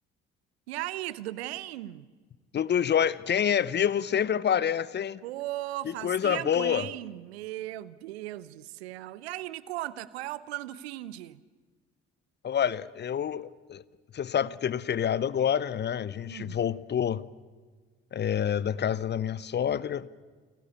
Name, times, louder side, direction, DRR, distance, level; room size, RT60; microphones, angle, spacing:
voice 1, 0.7-2.1 5.2-11.4 16.3-16.6, right 15 dB, 75° right, 0.6 m, -37 dB
voice 2, 2.5-5.2 5.8-6.9 12.4-13.8 14.1-17.2 18.1-20.1, left 8 dB, 35° left, 0.6 m, -27 dB
29.5 x 10.5 x 8.3 m
figure-of-eight pair, 45°, 32 cm